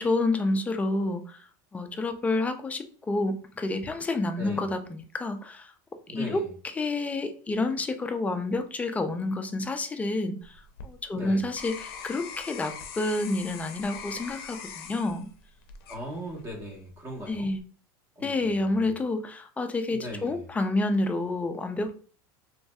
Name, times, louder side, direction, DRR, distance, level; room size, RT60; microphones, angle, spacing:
voice 1, 0.0-1.4 1.7-5.7 6.1-10.6 10.8-15.3 17.3-17.6 18.2-21.9, left 2 dB, 10° left, 7 dB, 0.3 m, -29 dB
voice 2, 4.4-4.7 6.1-6.5 11.1-11.4 15.9-17.5 18.2-18.8 19.9-20.4, equal, 20° right, -1 dB, 1.2 m, -39 dB
sound 1, 10.4-16.6 17.1-17.6, left 7 dB, 85° left, 0.5 m, -42 dB
3.1 x 2.6 x 2.2 m, 0.40 s
supercardioid pair, 130°, 12 cm